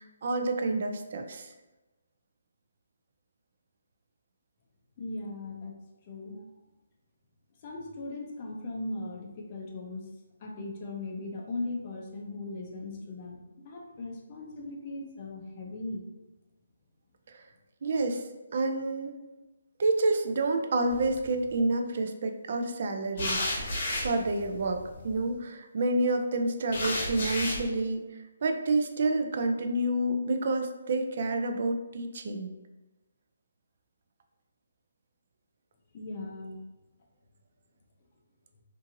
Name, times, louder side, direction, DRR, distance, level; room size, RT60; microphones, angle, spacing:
voice 1, 0.0-1.5 17.8-18.2 18.5-19.2 19.8-28.0 28.4-32.5, right 2 dB, 50° right, 6 dB, 0.3 m, -29 dB
voice 2, 5.0-5.7 6.1-6.4 7.6-10.1 10.4-13.4 13.6-16.1 35.9-36.6, left 2 dB, 30° left, 1 dB, 0.5 m, -38 dB
sound 1, 20.9-21.4 23.2-25.2 26.7-27.6, left 1 dB, 50° left, 0.8 m, -33 dB
2.7 x 2.5 x 2.6 m, 1.1 s
hypercardioid pair, 165°, 0 cm